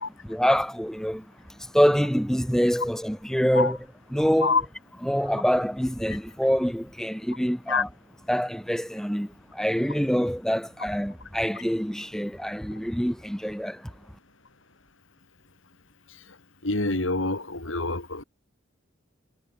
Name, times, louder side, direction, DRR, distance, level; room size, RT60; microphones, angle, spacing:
voice 1, 0.0-3.8 4.1-4.6 5.0-7.9 8.3-13.9, equal, 5° left, 4.5 m, -25 dB
voice 2, 16.6-18.2, left 3 dB, 80° left, 3.1 m, -26 dB
head